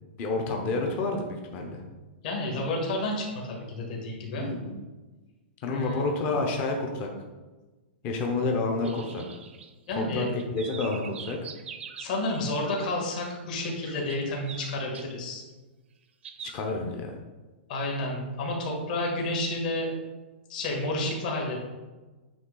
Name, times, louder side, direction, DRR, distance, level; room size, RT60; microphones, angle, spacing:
voice 1, 0.2-1.8 4.4-4.8 5.6-7.1 8.0-9.2 9.9-11.4 16.4-17.2, left 3 dB, 25° left, 1 dB, 0.8 m, -29 dB
voice 2, 2.2-4.5 5.7-6.1 9.9-10.3 12.0-15.4 17.7-19.9 20.5-21.6, left 2 dB, 45° left, -1 dB, 1.8 m, -30 dB
sound 1, 8.8-10.1 10.4-12.2 12.6-13.0 13.2-15.1 16.2-16.6, right 7 dB, 80° right, 0.7 m, -44 dB
8.4 x 3.3 x 3.9 m, 1.2 s
hypercardioid pair, 170°, 6 cm